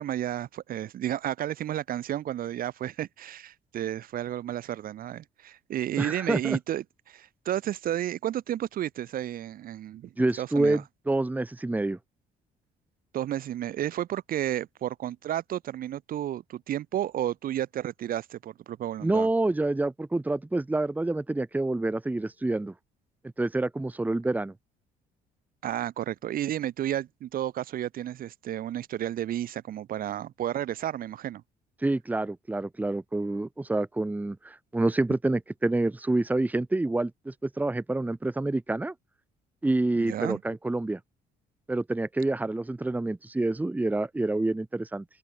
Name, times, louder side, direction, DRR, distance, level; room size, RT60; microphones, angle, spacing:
voice 1, 0.0-10.1 10.4-10.8 13.1-19.3 25.6-31.4 39.9-40.4, right 12 dB, 60° right, 1.5 m, -32 dB
voice 2, 6.0-6.6 10.2-12.0 19.0-22.7 23.4-24.5 31.8-38.9 39.6-41.0 41.7-45.0, right 2 dB, 10° right, 1.2 m, -27 dB
cardioid pair, 110°, 17 cm